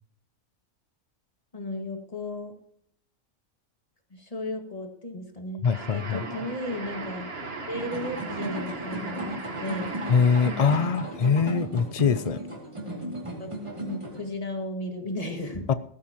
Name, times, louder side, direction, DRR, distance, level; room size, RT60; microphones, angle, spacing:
voice 1, 1.5-2.5 4.1-7.3 7.7-9.9 13.4-15.7, left 1 dB, 30° left, 3 dB, 2.0 m, -35 dB
voice 2, 5.6-6.2 10.1-12.4 15.7-15.8, left 5 dB, 75° left, 14 dB, 0.3 m, -23 dB
sound 1, 5.6-11.2, right 3 dB, 50° right, 1.6 m, -37 dB
sound 2, 7.7-14.3, right 1 dB, 20° right, 2.7 m, -36 dB
16.5 x 14.0 x 3.0 m, 0.69 s
omnidirectional pair, 1.4 m